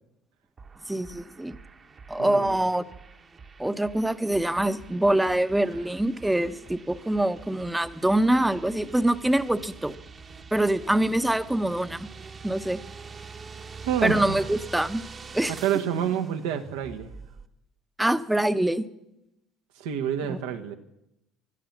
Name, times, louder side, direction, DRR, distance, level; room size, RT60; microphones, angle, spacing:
sound 1, 0.6-17.5, right 5 dB, 35° right, 1.1 m, -45 dB
voice 1, 0.9-1.6 2.1-2.8 3.6-9.9 10.5-12.1 12.4-12.8 14.0-15.0 15.3-15.5 18.0-18.9 20.3-20.4, right 1 dB, 5° right, 12 dB, 0.9 m, -24 dB
voice 2, 2.2-2.6 13.8-14.5 15.5-17.1 19.8-20.8, right 9 dB, 85° right, 7 dB, 1.4 m, -28 dB
16.0 x 11.5 x 7.3 m, 0.88 s
supercardioid pair, 85°, 0 cm